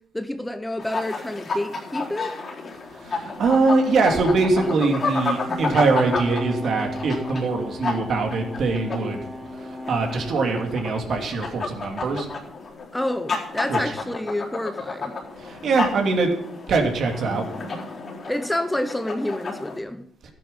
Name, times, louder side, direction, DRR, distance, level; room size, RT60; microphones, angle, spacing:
voice 1, 0.1-2.3 12.9-15.2 18.3-20.1, left 1 dB, 10° left, 0.9 m, -28 dB
sound 1, 0.8-19.8, left 3 dB, 45° left, 4.0 m, -32 dB
voice 2, 3.0-9.2 9.6-12.3 13.7-13.8 15.4-16.3 16.7-17.4, right 3 dB, 60° right, 2.9 m, -22 dB
sound 2, 4.1-10.8, left 1 dB, 25° right, 1.6 m, -35 dB
13.5 x 9.9 x 5.6 m
cardioid pair, 90°, 0 cm